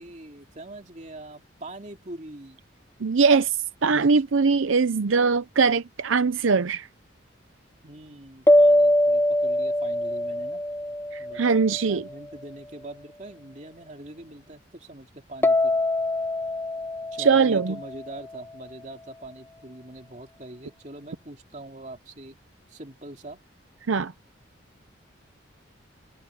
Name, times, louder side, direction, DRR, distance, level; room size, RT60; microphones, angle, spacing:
voice 1, 0.0-2.6 7.8-10.6 11.2-11.4 11.7-15.8 17.1-22.4 22.7-23.4, right 1 dB, 35° right, 2.7 m, -42 dB
voice 2, 3.0-6.9 11.1-12.0 17.2-17.8 23.9-24.1, right 5 dB, 80° right, 0.6 m, -21 dB
sound 1, 8.5-12.0 15.4-18.5, left 1 dB, 10° left, 0.7 m, -23 dB
head